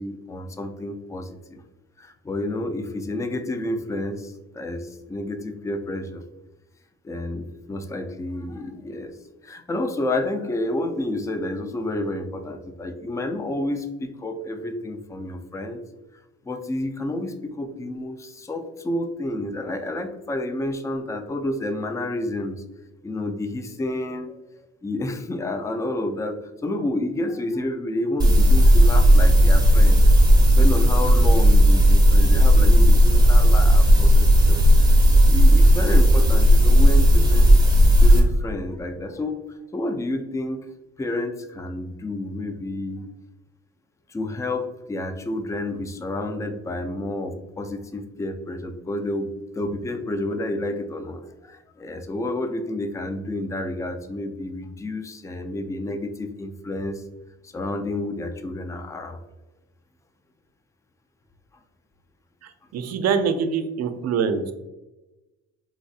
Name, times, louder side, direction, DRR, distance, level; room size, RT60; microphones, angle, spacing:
voice 1, 0.0-1.6 2.0-6.2 7.0-9.1 9.4-15.8 16.5-22.6 23.0-24.4 24.8-30.0 30.6-34.6 35.3-37.6 38.0-40.6 41.0-43.1 44.1-49.3 49.5-57.0 57.4-59.2, left 1 dB, 10° left, 7 dB, 0.3 m, -30 dB
sound 1, 28.2-38.2, equal, 15° right, 1.1 m, -14 dB
voice 2, 62.7-64.5, right 6 dB, 60° right, 9 dB, 0.5 m, -24 dB
4.2 x 2.6 x 2.3 m, 1.0 s
cardioid pair, 90°, 30 cm